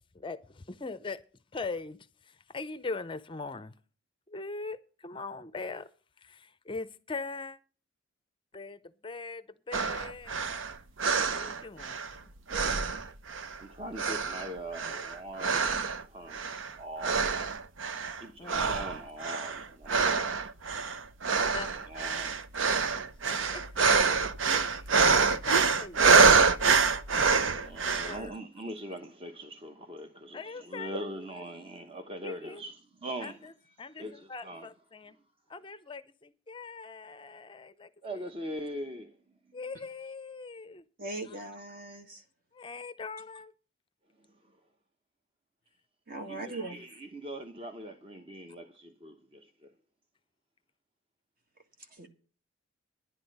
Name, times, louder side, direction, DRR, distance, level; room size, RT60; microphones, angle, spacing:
voice 1, 0.1-1.2 1.5-3.7 4.3-5.9 6.2-7.6 8.5-10.5 11.3-12.2 18.4-18.8 21.5-22.0 23.2-23.6 24.0-24.3 24.6-28.4 30.3-31.0 32.2-32.6 33.2-33.5 33.8-35.2 35.5-38.2 39.5-40.8 42.5-43.5 46.4-46.5, left 4 dB, 25° left, 0.5 m, -41 dB
sound 1, 9.7-12.2 12.5-13.6 14.0-16.0 16.3-16.7 17.0-18.2 18.5-28.2, right 5 dB, 70° right, 0.7 m, -26 dB
voice 2, 13.6-15.7 16.0-16.5 16.8-17.4 18.1-20.5 21.9-22.4 27.6-33.4 34.0-34.7 38.0-39.2 46.3-49.7, right 1 dB, 25° right, 0.9 m, -42 dB
voice 3, 41.0-42.2 46.1-46.8 51.9-52.2, right 2 dB, 45° right, 1.9 m, -40 dB
11.0 x 9.7 x 5.3 m
head